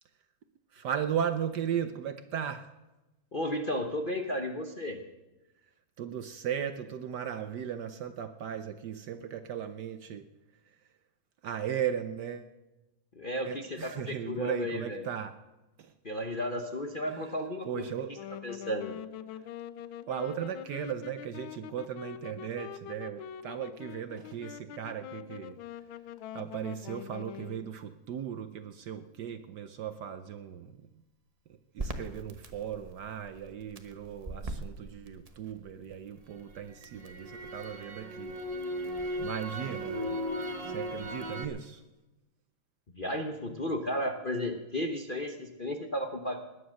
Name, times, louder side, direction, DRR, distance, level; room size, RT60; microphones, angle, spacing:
voice 1, 0.7-2.7 6.0-10.3 11.4-12.5 13.4-15.4 15.8-15.9 17.1-17.3 17.6-18.1 19.3-19.5 20.1-25.6 26.3-30.9 31.7-38.4 38.6-38.7 39.2-40.3 40.6-41.8, right 9 dB, 65° right, 10 dB, 1.1 m, -37 dB
voice 2, 3.3-5.0 13.2-15.0 16.0-17.8 18.4-19.0 43.0-46.4, left 1 dB, 35° left, 3 dB, 0.8 m, -33 dB
Wind instrument woodwind instrument, 18.0-27.7, left 10 dB, 75° left, 1.4 m, -44 dB
Crackle, 31.8-35.9 36.3-41.4, equal, 30° right, 0.6 m, -37 dB
19.5 x 10.0 x 6.4 m, 1.0 s
omnidirectional pair, 2.3 m